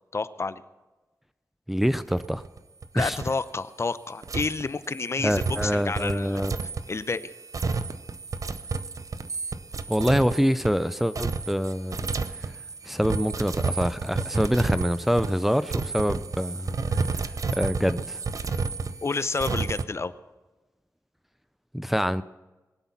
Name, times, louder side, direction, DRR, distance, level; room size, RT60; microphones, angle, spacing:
voice 1, 0.1-0.6 2.9-6.4 6.9-7.3 19.0-20.1, left 4 dB, 45° left, 15 dB, 0.7 m, -29 dB
voice 2, 1.7-2.4 3.0-3.2 5.2-6.6 9.9-12.6 12.8-16.8 17.5-18.2 21.7-22.2, equal, 5° right, 14 dB, 0.5 m, -25 dB
sound 1, 2.1-2.8 3.1-3.4 4.2-19.8, right 4 dB, 60° right, 0.7 m, -31 dB
22.0 x 8.1 x 5.9 m, 1.1 s
cardioid pair, 65°, 6 cm